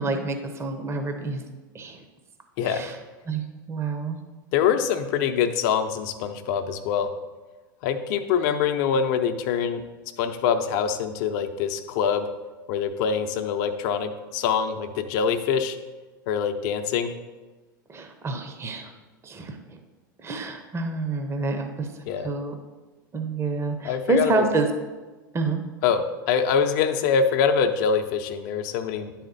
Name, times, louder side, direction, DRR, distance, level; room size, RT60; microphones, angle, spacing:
voice 1, 0.0-1.4 1.7-2.0 2.6-3.0 3.3-3.4 3.7-4.2 17.9-18.9 19.2-19.8 20.2-22.6 23.1-24.7 25.3-25.6, right 3 dB, 25° right, 5 dB, 0.9 m, -28 dB
voice 2, 4.5-7.1 7.8-9.8 10.2-12.3 12.7-15.8 16.3-17.1 22.1-22.3 23.8-24.4 25.8-26.0 26.3-29.3, left 7 dB, 60° left, 7 dB, 0.7 m, -24 dB
10.0 x 4.2 x 4.1 m, 1.2 s
hypercardioid pair, 90°, 11 cm